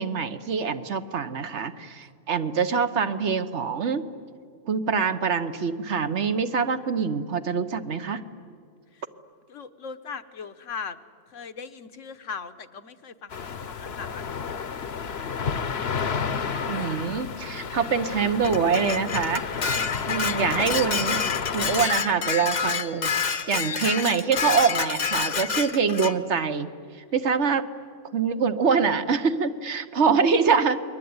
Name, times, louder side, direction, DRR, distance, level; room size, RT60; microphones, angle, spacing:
voice 1, 0.0-4.1 4.7-8.2 16.7-19.4 20.1-21.2 21.5-26.7 27.1-27.7 28.1-30.8, right 5 dB, 65° right, 10 dB, 1.4 m, -25 dB
voice 2, 9.5-11.0 11.3-14.3, left 5 dB, 75° left, 10 dB, 1.4 m, -39 dB
sound 1, 13.3-21.9, left 6 dB, 55° left, 1.2 m, -31 dB
Dishes pots and pans, 18.4-26.2, left 6 dB, 40° left, 0.9 m, -28 dB
29.0 x 21.5 x 9.6 m, 2.1 s
omnidirectional pair, 1.3 m